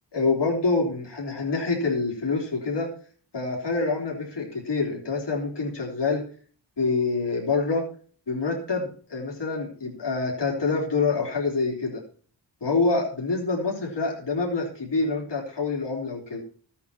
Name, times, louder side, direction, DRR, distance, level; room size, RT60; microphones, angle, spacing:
voice 1, 0.1-2.9 3.3-6.3 6.8-7.9 8.3-12.0 12.6-16.4, left 3 dB, 70° left, -2 dB, 3.8 m, -26 dB
14.0 x 8.6 x 4.4 m, 0.42 s
cardioid pair, 50°, 43 cm